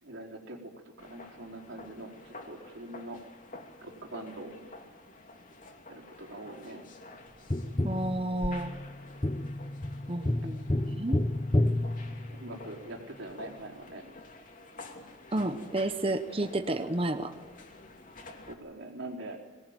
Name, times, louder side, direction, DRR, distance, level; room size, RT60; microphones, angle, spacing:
voice 1, 0.0-3.2 3.8-4.6 5.9-6.8 12.3-14.0 18.5-19.4, right 1 dB, 70° right, 0 dB, 4.4 m, -43 dB
sound 1, 1.0-18.5, left 2 dB, 45° left, 2.8 m, -50 dB
Tap, 7.5-12.8 15.4-15.5, left 1 dB, 25° left, 0.7 m, -30 dB
voice 2, 7.8-8.7 10.1-11.2 15.3-17.3, right 1 dB, 30° right, 8 dB, 0.9 m, -31 dB
23.0 x 19.0 x 9.1 m, 1.4 s
head